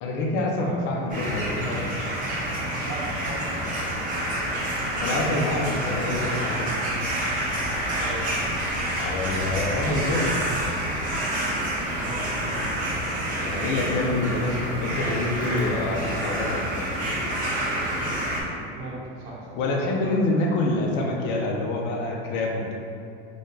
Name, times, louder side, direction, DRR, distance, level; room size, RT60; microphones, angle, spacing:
voice 1, 0.0-1.9 5.0-6.7 9.0-10.3 13.4-16.7 19.6-22.7, left 2 dB, 40° left, -1 dB, 0.5 m, -26 dB
sound 1, 1.1-18.4, right 1 dB, 30° right, 0.7 m, -28 dB
voice 2, 2.8-3.8 7.9-8.3 12.0-12.7 17.9-19.6 20.0-20.1, right 2 dB, 80° right, -6 dB, 1.2 m, -39 dB
4.0 x 2.2 x 3.2 m, 2.6 s
supercardioid pair, 145°, 29 cm